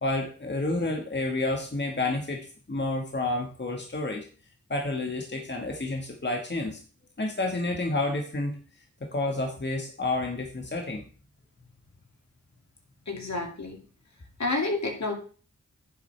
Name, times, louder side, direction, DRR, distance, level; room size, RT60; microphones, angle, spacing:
voice 1, 0.0-4.3 4.7-6.8 7.2-8.6 9.0-11.0, left 2 dB, 35° left, 2 dB, 1.5 m, -30 dB
voice 2, 13.1-13.8 14.4-15.1, left 2 dB, 65° left, 2 dB, 2.4 m, -29 dB
10.0 x 7.5 x 3.3 m, 0.39 s
cardioid pair, 45°, 30 cm